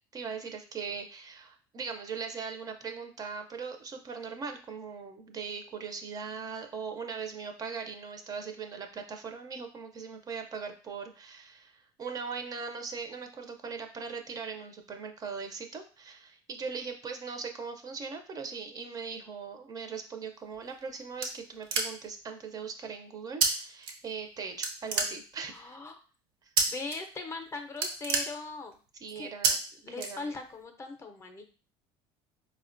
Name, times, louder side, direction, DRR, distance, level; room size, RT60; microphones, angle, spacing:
voice 1, 0.1-25.8 26.4-26.5 29.0-29.6 30.0-30.3, right 5 dB, 35° right, 5 dB, 0.4 m, -40 dB
sound 1, 20.5-22.2 23.4-23.5 23.8-24.3 24.6-25.6 26.6-27.0 27.3-27.4 27.7-28.9 29.4-29.5 30.0-30.6, right 5 dB, 90° right, 0.6 m, -29 dB
voice 2, 25.5-25.9 26.7-28.8 29.2-29.3 29.8-31.4, left 3 dB, 25° left, 5 dB, 0.5 m, -39 dB
4.2 x 2.1 x 2.5 m, 0.37 s
supercardioid pair, 110°, 11 cm